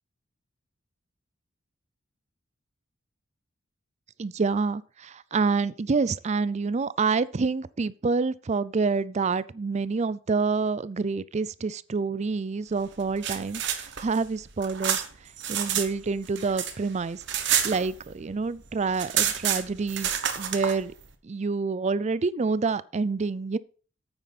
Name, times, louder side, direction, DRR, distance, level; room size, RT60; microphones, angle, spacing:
voice 1, 4.2-15.0 15.5-20.1 20.4-20.9 21.2-23.6, right 4 dB, 35° right, 0.4 m, -27 dB
sound 1, 13.0-15.9 16.2-18.3 18.6-18.7 18.9-20.7, right 9 dB, 60° right, 1.3 m, -28 dB
9.3 x 8.8 x 4.1 m
head